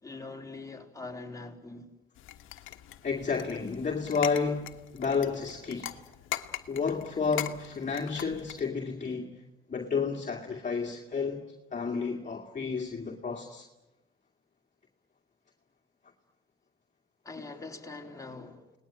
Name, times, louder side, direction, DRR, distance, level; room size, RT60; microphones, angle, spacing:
voice 1, 0.0-1.9 17.2-18.7, left 3 dB, 15° left, 3.9 m, -43 dB
sound 1, 2.2-8.7, left 14 dB, 85° left, 1.3 m, -41 dB
voice 2, 3.0-6.0 6.7-9.4 9.7-11.4 11.7-13.7, left 5 dB, 40° left, 2.4 m, -31 dB
30.0 x 19.0 x 9.0 m
cardioid pair, 90°, 20 cm